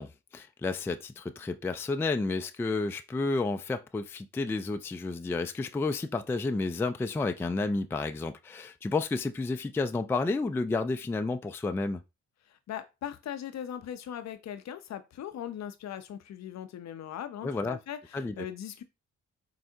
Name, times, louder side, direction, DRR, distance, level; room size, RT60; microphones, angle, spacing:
voice 1, 0.0-12.0 17.4-17.8 18.1-18.5, left 3 dB, 10° left, 0.3 m, -31 dB
voice 2, 12.5-18.8, left 10 dB, 55° left, 0.5 m, -39 dB
4.3 x 2.0 x 2.7 m
hypercardioid pair, 45°, 32 cm